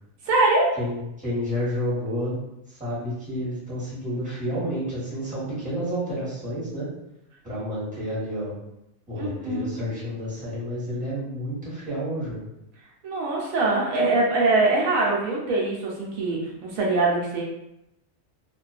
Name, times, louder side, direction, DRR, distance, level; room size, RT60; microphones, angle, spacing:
voice 1, 0.2-0.8 9.2-9.7 13.0-17.4, right 2 dB, 80° right, -3 dB, 1.0 m, -23 dB
voice 2, 0.8-2.4 2.7-6.9 7.4-8.5 9.1-12.4, equal, 5° right, -9 dB, 0.9 m, -30 dB
2.4 x 2.2 x 2.3 m, 0.87 s
omnidirectional pair, 1.4 m